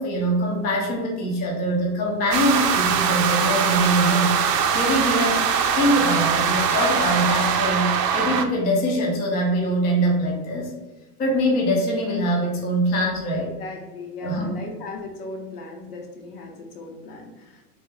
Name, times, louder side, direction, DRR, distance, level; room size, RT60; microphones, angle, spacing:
voice 1, 0.0-4.3 4.7-5.5 5.7-10.7 11.2-13.5 14.2-14.5, equal, 20° left, -2 dB, 0.5 m, -23 dB
sound 1, 2.3-8.4, right 7 dB, 85° right, 0.6 m, -22 dB
voice 2, 13.6-17.6, left 3 dB, 70° left, 2 dB, 1.0 m, -37 dB
3.3 x 2.2 x 3.2 m, 1.1 s
hypercardioid pair, 125°, 47 cm